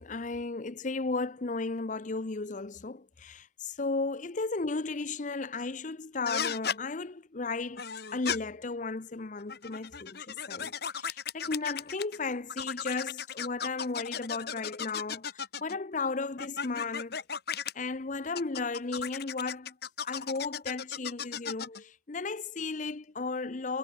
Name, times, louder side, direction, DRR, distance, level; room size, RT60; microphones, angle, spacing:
voice 1, 0.0-17.2 17.7-19.8 20.0-23.8, left 3 dB, 45° left, 0.8 m, -35 dB
sound 1, 6.3-6.8 7.8-8.4 9.4-12.2 12.5-15.8 16.4-17.7 18.4-21.8, left 7 dB, 60° left, 1.9 m, -36 dB
head